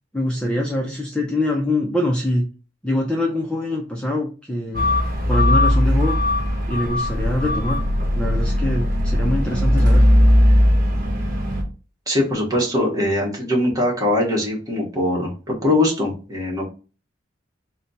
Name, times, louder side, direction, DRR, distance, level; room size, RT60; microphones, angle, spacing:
voice 1, 0.1-2.5 2.8-4.9 5.3-6.1 6.7-7.8 8.2-10.1, left 1 dB, 5° left, -1 dB, 0.5 m, -24 dB
sound 1, 4.7-11.6, left 1 dB, 50° right, 1.0 m, -18 dB
voice 2, 12.1-16.7, left 1 dB, 20° right, -2 dB, 1.2 m, -21 dB
4.1 x 2.2 x 4.0 m, 0.35 s
head